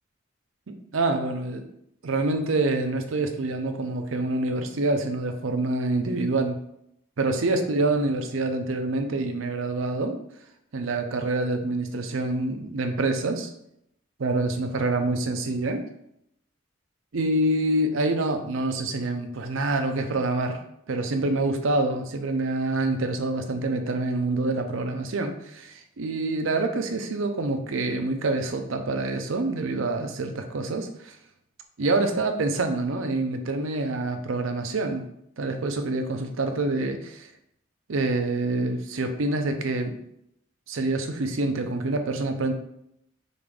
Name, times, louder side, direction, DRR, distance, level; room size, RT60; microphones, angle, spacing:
voice 1, 0.7-1.7 2.0-6.6 7.2-10.2 10.7-13.5 14.2-15.8 17.1-31.2 31.8-35.1 35.4-37.3 37.9-39.9 40.7-42.5, right 2 dB, 75° right, 6 dB, 0.6 m, -26 dB
5.2 x 2.5 x 3.3 m, 0.76 s
head